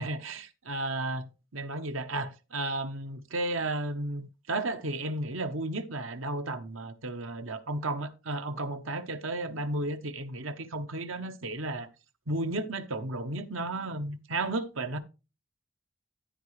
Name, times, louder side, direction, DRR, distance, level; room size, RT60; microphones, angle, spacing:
voice 1, 0.0-11.9 12.3-15.0, right 2 dB, 80° right, 1.1 m, -33 dB
14.0 x 4.8 x 3.2 m
head